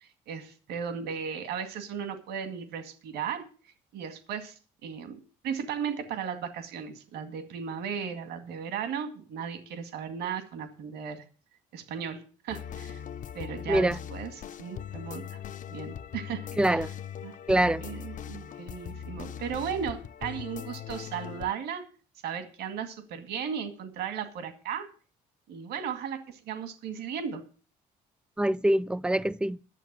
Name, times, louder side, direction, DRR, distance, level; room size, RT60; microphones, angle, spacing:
voice 1, 0.0-3.4 3.9-11.2 11.7-13.0 13.3-15.4 15.7-16.9 17.2-17.4 17.8-21.8 22.2-24.9 25.5-27.4, right 7 dB, 80° right, 2.0 m, -36 dB
sound 1, 12.5-21.5, left 9 dB, 50° left, 0.6 m, -40 dB
voice 2, 13.7-14.0 16.6-16.9 17.5-17.8 28.4-29.6, right 1 dB, 5° right, 0.5 m, -24 dB
12.5 x 7.2 x 7.4 m
supercardioid pair, 85°, 17 cm